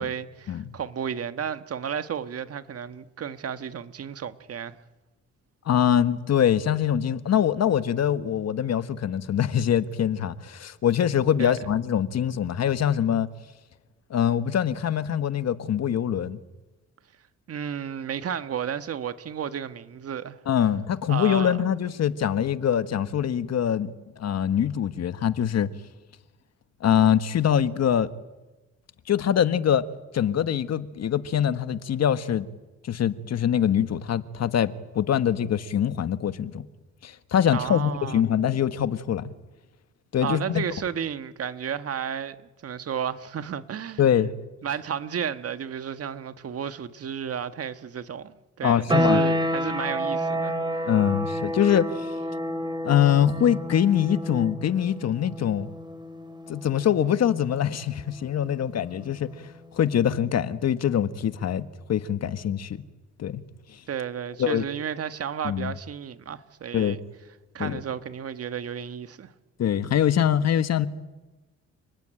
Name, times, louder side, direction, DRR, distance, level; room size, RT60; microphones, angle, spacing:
voice 1, 0.0-4.8 11.4-11.6 17.5-20.4 21.1-21.6 37.5-38.2 40.2-44.1 44.6-50.6 63.9-67.0 67.5-69.3, right 8 dB, 50° right, 1.6 m, -33 dB
voice 2, 5.6-13.3 14.1-16.4 20.5-25.7 26.8-28.1 29.1-29.8 30.1-32.5 32.8-36.6 37.0-39.3 40.1-40.6 44.0-44.3 48.6-49.2 50.8-52.1 52.8-55.7 56.5-59.3 59.7-62.8 63.2-63.4 64.4-64.6 65.4-65.7 66.7-67.0 67.6-67.8 69.6-70.9, left 9 dB, 60° left, 1.6 m, -24 dB
sound 1, 48.9-59.4, equal, 15° right, 4.2 m, -30 dB
29.5 x 20.0 x 9.1 m
cardioid pair, 90°, 30 cm